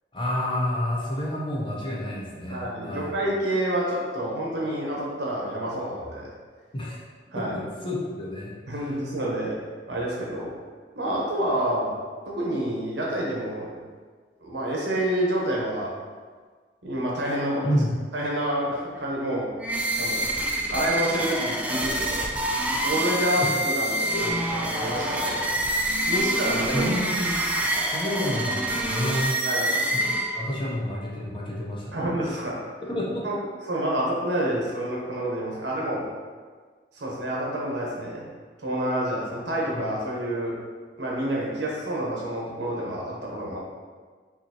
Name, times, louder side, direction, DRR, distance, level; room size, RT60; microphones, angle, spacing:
voice 1, 0.1-3.1 6.7-7.0 7.3-9.0 17.6-17.9 23.4-23.5 24.2-24.3 26.7-27.4 27.9-29.4 30.4-32.3 32.9-33.3 39.4-39.5 39.7-39.8, equal, 30° left, -4 dB, 0.8 m, -29 dB
voice 2, 2.5-6.3 7.3-7.6 8.7-9.5 9.9-10.6 10.9-11.9 12.3-13.7 14.4-15.9 16.8-17.7 18.1-19.5 20.0-20.3 20.7-22.3 22.8-25.5 26.0-26.9 29.4-29.7 31.9-32.5 33.2-33.3 33.7-36.0 37.0-38.3 38.6-40.5 41.0-43.6, right 1 dB, 75° right, -3 dB, 1.1 m, -28 dB
sound 1, 19.6-30.7, right 1 dB, 10° right, 0.4 m, -26 dB
5.6 x 2.7 x 2.9 m, 1.5 s
head